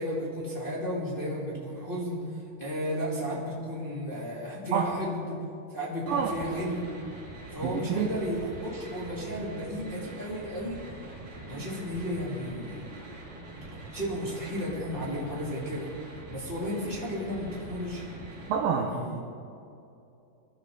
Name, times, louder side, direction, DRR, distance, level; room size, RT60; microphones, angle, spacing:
voice 1, 0.0-5.4 5.7-6.9 7.5-10.8 11.5-12.9 13.9-15.9 16.3-18.0 18.7-19.2, equal, 15° left, -6 dB, 2.1 m, -33 dB
sound 1, 6.0-18.6, right 2 dB, 55° right, 5.8 m, -44 dB
voice 2, 7.6-8.2 11.6-11.7 18.5-19.2, right 7 dB, 75° right, 2 dB, 2.1 m, -28 dB
22.5 x 12.0 x 3.9 m, 2.6 s
omnidirectional pair, 5.1 m